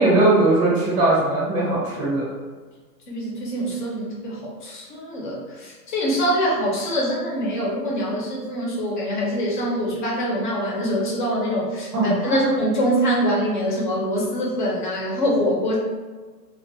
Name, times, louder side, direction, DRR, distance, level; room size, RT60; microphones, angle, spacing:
voice 1, 0.0-2.2 11.9-12.5, right 2 dB, 20° right, -7 dB, 0.6 m, -19 dB
voice 2, 3.1-15.8, equal, 30° left, -3 dB, 0.5 m, -24 dB
2.4 x 2.1 x 2.5 m, 1.4 s
hypercardioid pair, 150°, 49 cm